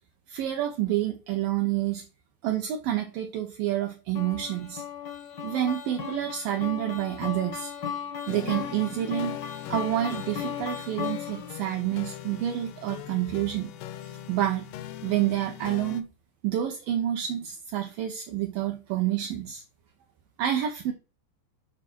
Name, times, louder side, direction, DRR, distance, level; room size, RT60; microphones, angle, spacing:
voice 1, 0.3-2.0 2.4-4.8 5.4-7.7 8.3-9.4 9.7-13.7 14.0-14.7 15.0-16.1 16.4-19.6 20.4-20.9, right 12 dB, 80° right, 2.1 m, -28 dB
sound 1, 4.1-11.6, left 8 dB, 60° left, 1.1 m, -36 dB
sound 2, 8.3-16.0, left 12 dB, 80° left, 2.2 m, -41 dB
11.0 x 3.6 x 6.1 m
omnidirectional pair, 5.1 m